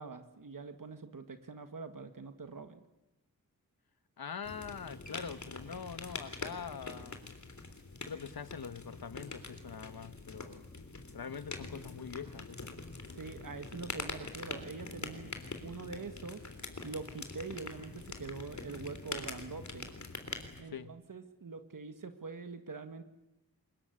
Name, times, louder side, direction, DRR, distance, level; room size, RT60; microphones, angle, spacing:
voice 1, 0.0-2.8 13.1-15.3 15.6-16.4 16.8-19.9 20.6-23.0, right 4 dB, 60° right, 8 dB, 1.8 m, -44 dB
voice 2, 4.2-7.3 8.1-10.6 11.1-12.7 20.7-20.9, left 6 dB, 85° left, 13 dB, 1.4 m, -44 dB
sound 1, 4.4-20.6, left 3 dB, 50° left, 3.4 m, -44 dB
24.5 x 21.5 x 9.7 m, 0.94 s
wide cardioid pair, 90°, 36 cm